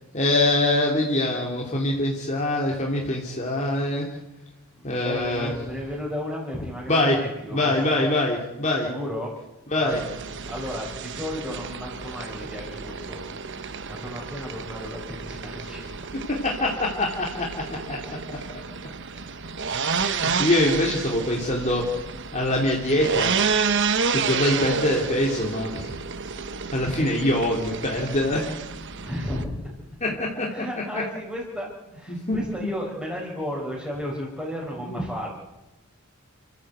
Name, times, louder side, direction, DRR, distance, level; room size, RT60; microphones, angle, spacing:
voice 1, 0.1-4.1 4.8-5.5 6.9-7.2 7.5-8.9 9.7-10.0 16.3-17.5 17.9-18.0 20.0-21.8 22.3-23.4 24.1-26.0 26.7-28.5 30.0-30.5 30.9-31.0 32.1-32.7 34.9-35.0, left 1 dB, 35° left, -2 dB, 3.0 m, -24 dB
voice 2, 4.7-8.1 8.9-9.3 9.7-10.0 10.4-15.8 19.1-19.5 20.0-20.5 29.0-29.6 30.5-35.3, equal, 5° right, -6 dB, 5.1 m, -34 dB
sound 1, 9.9-29.4, right 5 dB, 55° right, 1.1 m, -30 dB
29.0 x 14.0 x 8.2 m, 0.99 s
head